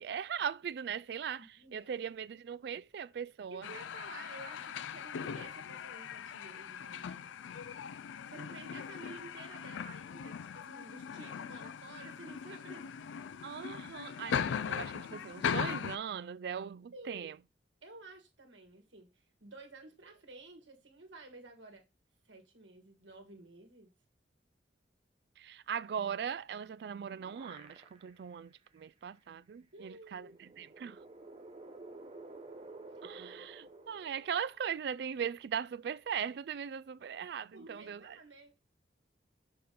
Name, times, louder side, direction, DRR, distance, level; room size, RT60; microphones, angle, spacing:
voice 1, 0.0-3.7 13.4-17.4 25.4-31.0 33.0-38.2, right 7 dB, 60° right, 0.3 m, -39 dB
voice 2, 1.4-1.9 3.5-7.3 7.7-7.8 8.3-13.0 16.9-17.3 17.8-21.9 22.3-23.9 29.7-30.6 37.5-38.6, right 2 dB, 85° right, 1.8 m, -52 dB
sound 1, 3.6-16.0, left 7 dB, 85° left, 0.3 m, -39 dB
sound 2, 26.8-28.3 28.8-28.9 30.1-34.9, right 2 dB, 30° right, 0.8 m, -52 dB
6.5 x 4.2 x 3.8 m
head